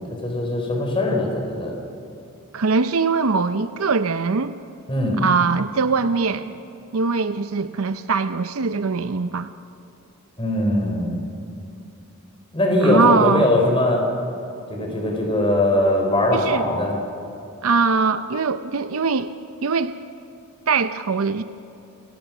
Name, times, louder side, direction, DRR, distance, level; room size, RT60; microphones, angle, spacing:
voice 1, 0.2-1.7 4.9-5.2 10.4-11.2 12.5-14.0 14.7-16.9, left 1 dB, 25° left, 1 dB, 4.3 m, -20 dB
voice 2, 2.5-4.6 5.2-6.5 6.9-9.5 12.8-13.5 16.3-16.7 17.6-19.3 19.6-19.9 20.7-21.4, right 4 dB, 80° right, 11 dB, 0.7 m, -21 dB
28.5 x 18.0 x 6.1 m, 2.8 s
head